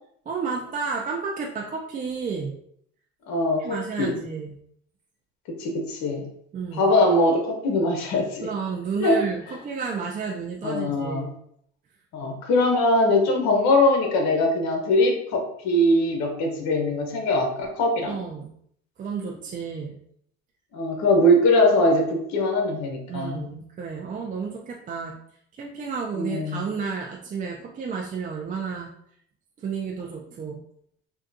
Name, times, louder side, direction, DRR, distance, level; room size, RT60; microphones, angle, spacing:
voice 1, 0.3-2.6 3.6-4.6 6.5-6.9 8.4-11.3 18.1-18.5 19.0-20.0 23.1-25.2 25.6-28.9 29.6-30.6, right 5 dB, 30° right, -1 dB, 0.4 m, -31 dB
voice 2, 3.3-4.1 5.5-6.3 6.8-8.5 9.0-9.2 10.6-11.3 12.1-18.2 20.7-23.4 26.1-26.6, left 1 dB, 65° left, 2 dB, 0.9 m, -22 dB
3.6 x 2.2 x 2.6 m, 0.68 s
supercardioid pair, 95°, 30 cm